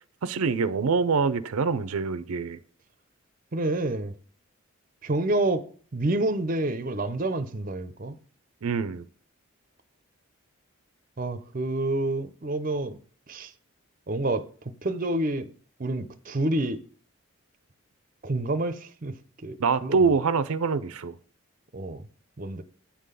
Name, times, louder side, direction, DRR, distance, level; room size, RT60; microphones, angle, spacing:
voice 1, 0.2-2.6 8.6-9.0 19.6-21.2, right 5 dB, 90° right, 0.5 m, -25 dB
voice 2, 3.5-4.1 5.0-5.6 5.9-8.1 11.2-13.0 13.3-13.5 14.1-14.4 14.8-15.4 15.8-16.8 18.2-19.1 19.4-20.0 21.7-22.0 22.4-22.6, right 2 dB, 40° right, 0.6 m, -28 dB
8.7 x 3.8 x 6.7 m
head